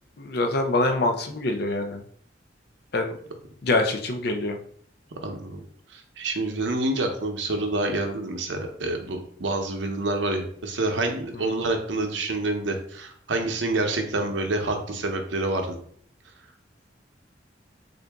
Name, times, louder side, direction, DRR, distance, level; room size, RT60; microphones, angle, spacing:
voice 1, 0.2-2.0 2.9-3.2 3.6-4.6, left 2 dB, 60° left, 5 dB, 0.5 m, -25 dB
voice 2, 5.2-5.6 5.9-15.8, right 2 dB, 80° right, 4 dB, 0.7 m, -27 dB
3.8 x 2.6 x 3.4 m, 0.62 s
head